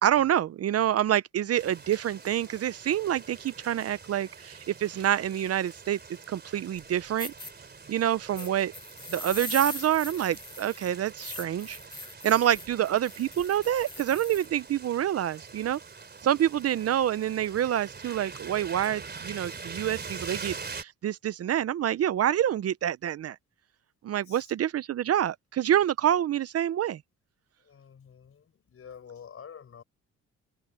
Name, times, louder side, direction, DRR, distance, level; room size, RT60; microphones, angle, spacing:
voice 1, 0.0-6.0 6.3-7.3 7.9-8.7 9.1-11.8 12.2-15.8 16.2-23.4 24.0-27.0, right 11 dB, 55° right, 0.6 m, -27 dB
sound 1, 1.5-20.8, right 5 dB, 35° right, 3.4 m, -44 dB
sound 2, 6.8-6.9 7.2-7.5 8.4-14.5, left 2 dB, 15° left, 2.3 m, -41 dB
voice 2, 8.3-8.6 24.2-24.5 27.6-29.8, left 7 dB, 50° left, 5.3 m, -48 dB
cardioid pair, 90°, 30 cm